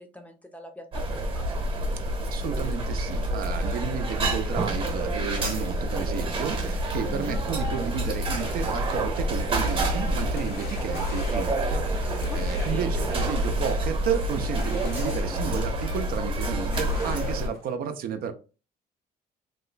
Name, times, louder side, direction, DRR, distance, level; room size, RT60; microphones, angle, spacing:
voice 1, 0.0-1.5 7.1-7.4 12.3-12.9, left 1 dB, 10° left, 5 dB, 0.6 m, -42 dB
sound 1, 0.9-17.5, right 1 dB, 35° right, 1.0 m, -28 dB
voice 2, 2.2-18.3, right 8 dB, 60° right, 7 dB, 0.6 m, -32 dB
sound 2, 2.3-17.8, left 7 dB, 70° left, 0.7 m, -49 dB
3.0 x 2.2 x 3.8 m, 0.34 s
cardioid pair, 110°, 17 cm